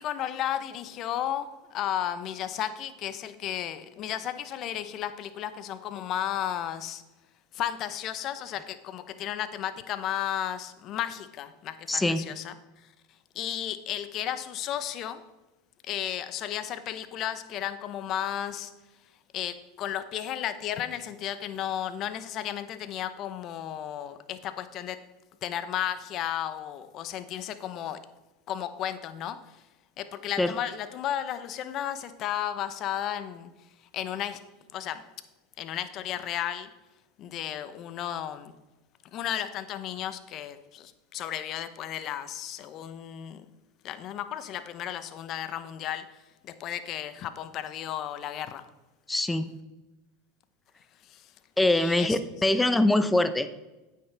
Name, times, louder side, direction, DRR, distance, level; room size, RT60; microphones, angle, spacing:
voice 1, 0.0-7.0 7.5-12.5 13.3-15.2 15.8-18.7 19.3-25.0 25.4-28.0 28.5-29.4 30.0-33.5 33.9-34.4 34.7-35.0 35.6-36.7 37.2-38.5 39.1-43.5 43.8-46.1 46.4-48.7 51.1-51.3 51.7-52.2, left 11 dB, 45° left, 12 dB, 0.8 m, -33 dB
voice 2, 11.9-12.2 30.4-30.5 49.1-49.5 51.6-53.5, left 2 dB, 10° left, 12 dB, 0.7 m, -23 dB
9.7 x 8.3 x 3.4 m, 1.1 s
hypercardioid pair, 100°, 0 cm